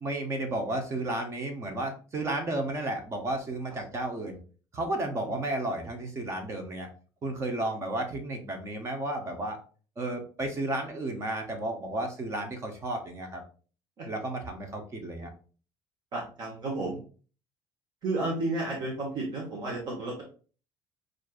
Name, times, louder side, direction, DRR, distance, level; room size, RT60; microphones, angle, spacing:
voice 1, 0.0-4.4 4.7-6.9 7.2-9.6 10.0-13.4 14.1-15.3, right 1 dB, 30° right, 4 dB, 0.8 m, -33 dB
voice 2, 16.1-17.0 18.0-20.2, right 2 dB, 50° right, -1 dB, 1.1 m, -32 dB
6.2 x 2.6 x 2.4 m, 0.39 s
cardioid pair, 130°, 9 cm